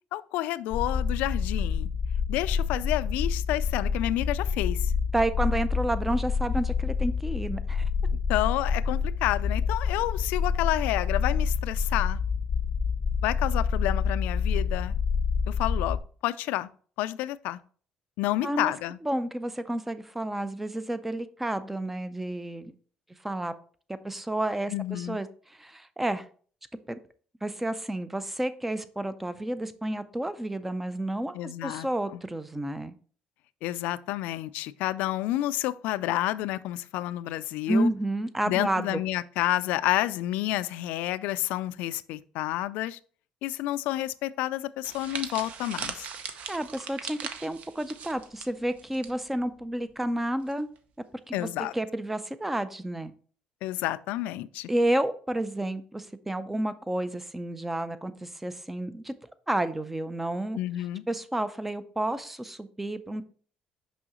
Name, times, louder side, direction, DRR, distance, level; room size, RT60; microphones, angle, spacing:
voice 1, 0.1-1.9 2.3-4.9 8.3-12.2 13.2-14.9 15.5-16.7 17.0-17.6 18.2-19.0 24.7-25.2 31.3-31.9 32.1-32.2 33.6-37.9 38.5-43.0 43.4-46.1 51.3-51.7 53.6-54.7 60.5-61.0, left 15 dB, 90° left, 0.3 m, -30 dB
sound 1, 0.7-16.0, left 6 dB, 30° left, 0.7 m, -27 dB
voice 2, 5.1-7.8 18.4-18.7 19.0-22.7 23.2-23.5 23.9-26.2 26.9-27.0 27.4-33.0 37.7-39.0 46.5-50.7 51.3-51.5 51.7-53.1 54.7-59.1 59.5-60.6 61.1-63.2, right 1 dB, 10° right, 0.4 m, -30 dB
sound 2, 44.8-49.1 49.4-49.6 50.5-50.8, right 6 dB, 55° right, 0.7 m, -39 dB
6.1 x 5.6 x 3.0 m
cardioid pair, 145°, 3 cm